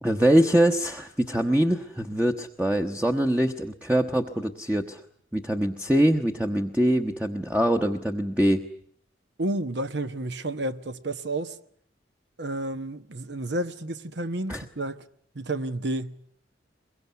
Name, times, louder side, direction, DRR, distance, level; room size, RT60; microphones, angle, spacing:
voice 1, 0.0-5.0 5.3-8.6 14.5-14.6, right 1 dB, 10° right, 1.0 m, -23 dB
voice 2, 9.4-11.6 12.4-15.0 15.3-16.2, right 1 dB, 65° right, 1.1 m, -31 dB
23.0 x 23.0 x 9.3 m
head